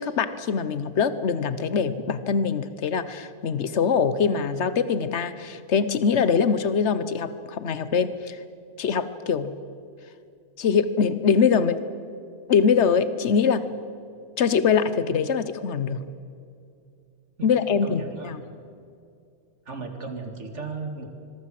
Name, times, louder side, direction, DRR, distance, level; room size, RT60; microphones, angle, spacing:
voice 1, 0.0-8.4 8.8-9.6 10.6-11.8 12.5-13.7 14.4-16.1 17.4-18.4, left 6 dB, 75° left, 13 dB, 1.3 m, -23 dB
voice 2, 17.8-18.6 19.7-21.1, right 4 dB, 85° right, 6 dB, 2.7 m, -36 dB
25.0 x 22.5 x 7.6 m, 2.4 s
omnidirectional pair, 1.2 m